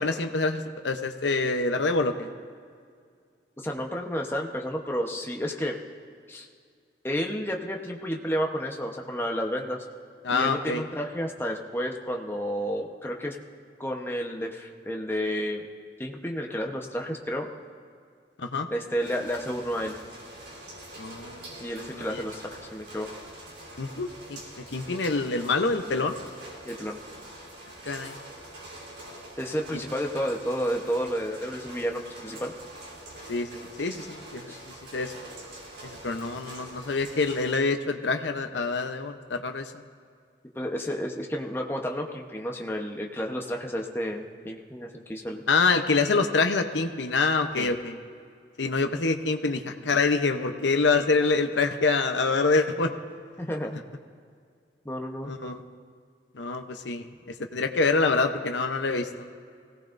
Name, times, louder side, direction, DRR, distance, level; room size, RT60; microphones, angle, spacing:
voice 1, 0.0-2.3 10.2-10.8 18.4-18.7 21.0-21.5 21.9-22.2 23.8-24.4 24.7-26.2 27.8-28.2 33.3-35.1 35.8-39.7 45.5-48.0 48.6-52.9 55.2-55.6 56.3-59.3, left 3 dB, 90° left, 6 dB, 0.8 m, -26 dB
voice 2, 3.6-5.8 6.3-6.5 7.0-9.9 10.3-13.4 13.8-15.7 16.0-17.5 18.7-19.9 21.6-23.1 26.6-27.0 29.4-32.5 34.5-34.6 40.5-45.4 47.5-47.7 53.4-53.8 54.8-55.3, equal, 15° left, 1 dB, 0.9 m, -31 dB
sound 1, 19.0-37.5, right 1 dB, 70° right, 3.5 m, -45 dB
22.5 x 17.0 x 2.6 m, 2.2 s
head